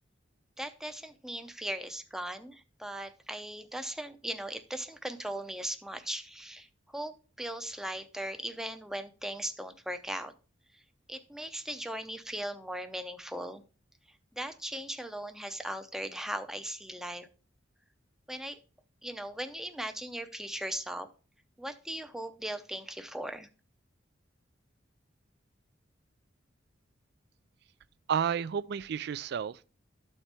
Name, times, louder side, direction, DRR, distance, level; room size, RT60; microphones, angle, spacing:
voice 1, 0.6-10.3 10.7-10.8 11.1-13.6 14.3-17.3 18.3-18.6 19.0-21.1 21.6-23.5, right 1 dB, 5° right, 0.6 m, -38 dB
voice 2, 28.1-29.7, right 7 dB, 60° right, 0.3 m, -31 dB
12.5 x 4.4 x 3.3 m
head